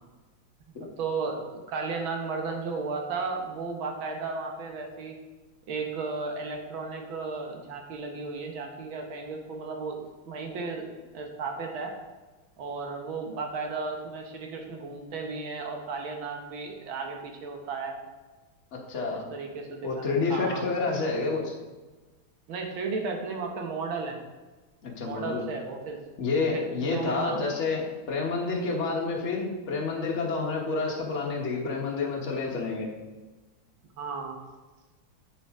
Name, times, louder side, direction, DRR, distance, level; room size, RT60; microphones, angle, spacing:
voice 1, 1.0-5.2 5.7-10.9 11.1-12.0 12.6-18.0 19.3-20.0 20.3-20.6 22.5-24.2 25.0-26.0 26.5-27.4 34.0-34.4, right 4 dB, 70° right, 2 dB, 1.9 m, -34 dB
voice 2, 18.9-19.2 19.8-21.5 24.8-25.5 26.2-32.9, left 4 dB, 35° left, -1 dB, 1.5 m, -29 dB
8.0 x 7.1 x 3.7 m, 1.2 s
omnidirectional pair, 2.3 m